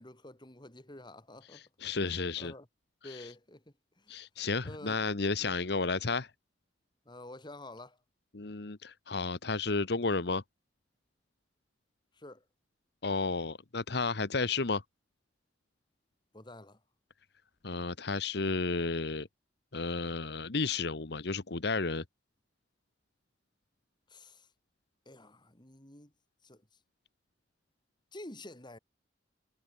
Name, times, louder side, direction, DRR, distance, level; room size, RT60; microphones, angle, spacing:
voice 1, 0.0-1.6 2.1-2.7 3.0-4.2 4.6-5.0 5.4-5.6 7.0-8.0 12.1-12.4 16.3-16.8 24.1-24.5 25.1-26.1 26.4-26.6 28.1-28.8, left 1 dB, 25° left, 2.7 m, -49 dB
voice 2, 1.5-2.5 3.0-3.3 4.1-6.3 8.3-10.4 13.0-14.8 17.6-19.3 19.7-22.0, left 3 dB, 60° left, 1.2 m, -32 dB
head